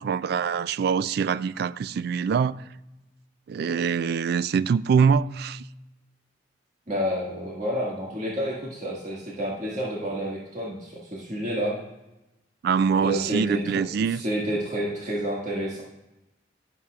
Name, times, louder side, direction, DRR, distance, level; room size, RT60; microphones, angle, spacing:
voice 1, 0.0-2.6 3.5-5.6 12.6-14.2, right 6 dB, 60° right, 0.3 m, -24 dB
voice 2, 6.9-11.8 13.0-15.8, equal, 45° right, 1.8 m, -29 dB
16.5 x 7.1 x 2.4 m
head